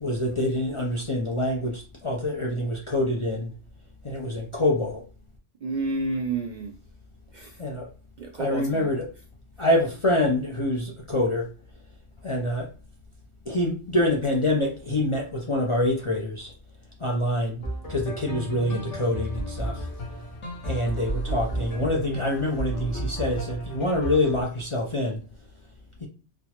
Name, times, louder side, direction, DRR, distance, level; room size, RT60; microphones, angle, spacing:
voice 1, 0.0-3.5 4.0-5.0 7.6-7.9 8.4-9.0 9.6-11.5 12.2-12.7 13.5-16.5 17.0-17.6 17.9-19.9 20.6-25.2 26.0-26.1, left 1 dB, 40° left, 0.4 m, -26 dB
voice 2, 5.6-6.7 7.3-7.6 8.2-8.9, right 3 dB, 60° right, 0.5 m, -30 dB
sound 1, 17.6-24.4, right 1 dB, 85° left, 1.4 m, -33 dB
4.2 x 2.1 x 2.9 m
omnidirectional pair, 1.2 m